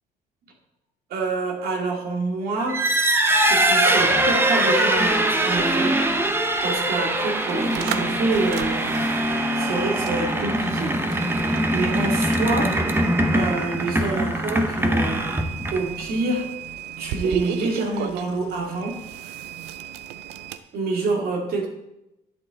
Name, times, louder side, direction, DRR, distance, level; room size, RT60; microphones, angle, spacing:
voice 1, 1.1-2.8 3.3-6.0 6.6-9.0 9.5-11.0 11.5-12.7 13.3-15.3 15.7-16.5 17.0-19.0 20.7-21.7, right 3 dB, 65° right, 1 dB, 2.3 m, -27 dB
sound 1, 2.6-16.0, right 1 dB, 15° right, 0.9 m, -22 dB
sound 2, 4.9-20.6, right 11 dB, 90° right, 0.6 m, -35 dB
11.0 x 7.7 x 3.7 m, 0.87 s
cardioid pair, 110°, 17 cm